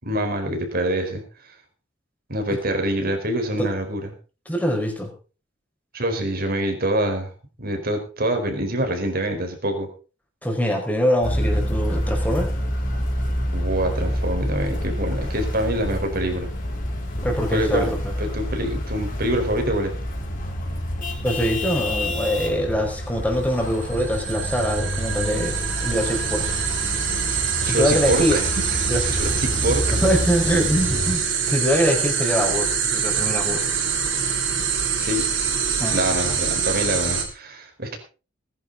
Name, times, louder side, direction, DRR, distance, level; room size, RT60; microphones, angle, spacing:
voice 1, 0.0-1.5 2.3-4.1 5.9-7.3 7.6-9.9 13.5-16.5 17.5-19.9 27.6-29.8 34.9-35.3 35.9-38.0, right 1 dB, 50° right, 5 dB, 4.5 m, -25 dB
voice 2, 4.5-5.1 10.4-12.5 17.2-18.1 21.2-25.6 25.8-26.5 27.6-28.4 28.9-29.1 30.0-33.7 35.8-36.0, equal, 10° left, 1 dB, 5.0 m, -23 dB
sound 1, 11.2-31.2, equal, 45° left, 4.4 m, -28 dB
sound 2, 23.6-37.2, right 7 dB, 75° right, 5.0 m, -25 dB
20.5 x 11.0 x 4.0 m, 0.35 s
head